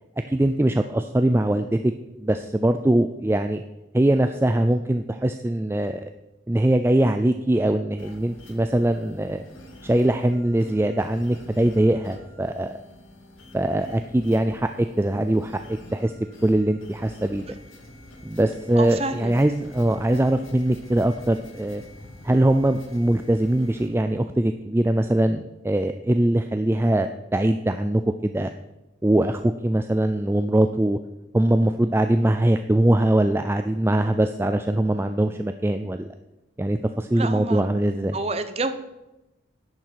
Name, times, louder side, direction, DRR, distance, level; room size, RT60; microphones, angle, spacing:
voice 1, 0.3-1.9 2.2-3.6 3.9-6.1 6.5-9.4 9.8-12.7 13.5-16.1 16.4-17.5 18.2-21.8 22.2-28.5 29.0-31.0 31.3-36.1 36.6-38.2, right 1 dB, 10° right, 8 dB, 0.3 m, -22 dB
sound 1, 8.0-23.9, left 1 dB, 85° left, 2.1 m, -47 dB
voice 2, 18.7-19.4 37.1-37.6 38.1-38.7, right 3 dB, 30° right, 10 dB, 0.8 m, -28 dB
10.5 x 9.3 x 5.8 m, 0.98 s
head